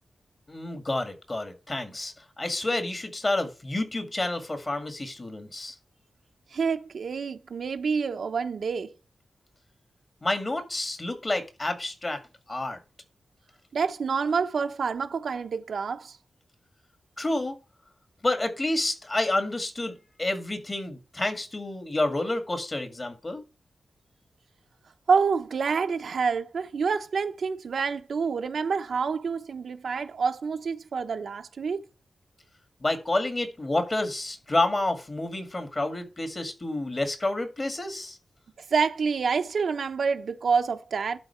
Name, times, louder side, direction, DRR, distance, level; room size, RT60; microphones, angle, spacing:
voice 1, 0.5-5.8 10.2-12.2 12.5-12.8 17.2-17.5 18.2-19.9 20.2-23.4 32.8-38.2, left 2 dB, 30° left, 1.9 m, -29 dB
voice 2, 6.5-8.9 13.7-16.2 25.1-31.8 38.7-41.2, right 5 dB, 75° right, 0.9 m, -27 dB
11.5 x 4.1 x 5.7 m
wide cardioid pair, 100°, 0 cm